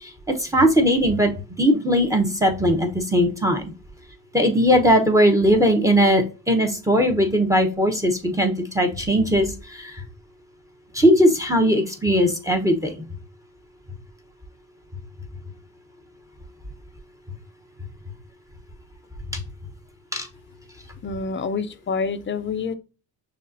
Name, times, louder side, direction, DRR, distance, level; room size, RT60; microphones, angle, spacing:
voice 1, 0.0-1.3 1.6-3.6 4.3-10.0 10.9-12.9 19.3-19.4 20.1-20.3, equal, 5° right, 0.9 m, -19 dB
voice 2, 21.0-22.7, left 5 dB, 25° left, 0.5 m, -27 dB
6.2 x 2.4 x 2.6 m
cardioid pair, 95°, 44 cm